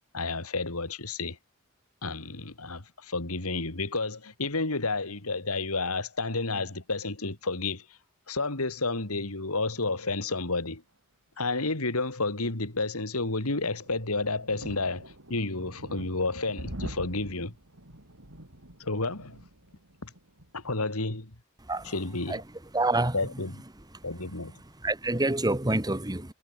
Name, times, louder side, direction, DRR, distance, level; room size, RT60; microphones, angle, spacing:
voice 1, 0.1-1.4 2.0-7.8 8.3-10.8 11.4-17.5 18.8-19.4 20.0-20.1 20.5-21.3 21.8-22.4 23.1-23.6 24.0-24.6, left 3 dB, 75° left, 3.0 m, -31 dB
sound 1, 13.4-20.9, right 1 dB, 65° right, 5.1 m, -45 dB
voice 2, 22.7-23.2 23.9-24.0 24.8-26.3, right 2 dB, 20° right, 2.0 m, -27 dB
head